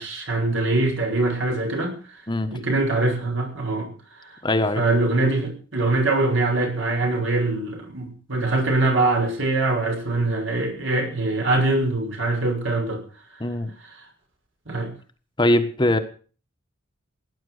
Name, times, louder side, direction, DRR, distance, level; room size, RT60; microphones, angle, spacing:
voice 1, 0.0-2.0 2.5-3.9 4.3-4.4 4.7-13.0 13.9-14.0 14.7-14.9, right 2 dB, 65° right, 3 dB, 6.2 m, -23 dB
voice 2, 4.4-4.8 13.4-13.7 15.4-16.0, left 1 dB, 25° left, 7 dB, 1.3 m, -21 dB
17.5 x 10.5 x 6.5 m, 0.41 s
head